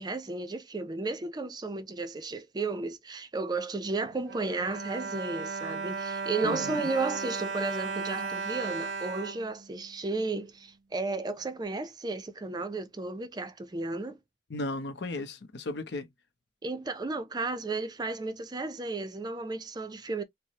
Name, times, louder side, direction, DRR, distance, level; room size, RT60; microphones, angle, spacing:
voice 1, 0.0-14.2 16.6-20.2, right 3 dB, 20° right, 0.4 m, -33 dB
Bowed string instrument, 4.1-10.3 11.0-11.1 11.4-11.5, right 4 dB, 85° right, 0.6 m, -36 dB
voice 2, 6.4-6.9 14.5-16.1, left 2 dB, 65° left, 0.7 m, -35 dB
4.5 x 2.0 x 2.7 m
head